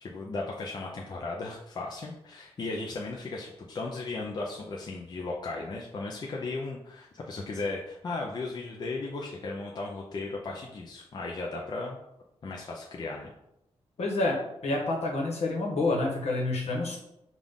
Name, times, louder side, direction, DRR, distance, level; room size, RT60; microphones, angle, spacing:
voice 1, 0.0-12.0 12.4-13.3, left 3 dB, 40° left, -2 dB, 0.5 m, -36 dB
voice 2, 14.0-17.0, left 2 dB, 65° left, -1 dB, 1.1 m, -28 dB
5.5 x 2.4 x 3.5 m, 0.85 s
wide cardioid pair, 155°, 12 cm